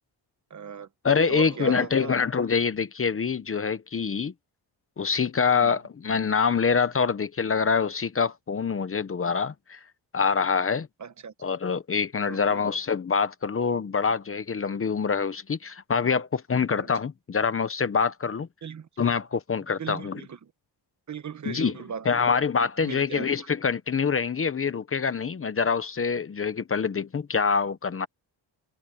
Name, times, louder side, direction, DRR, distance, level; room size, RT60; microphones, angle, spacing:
voice 1, 0.5-0.9 1.3-2.4 5.5-5.8 11.0-11.3 12.3-12.7 16.8-16.9 18.6-18.9 19.8-20.5 21.1-22.3 22.8-23.5, right 7 dB, 40° right, 1.1 m, -38 dB
voice 2, 1.0-4.3 5.0-9.8 10.1-10.9 11.4-18.5 19.0-20.2 21.5-21.7 22.1-28.1, left 5 dB, 30° left, 0.9 m, -25 dB
wide cardioid pair, 155°, 43 cm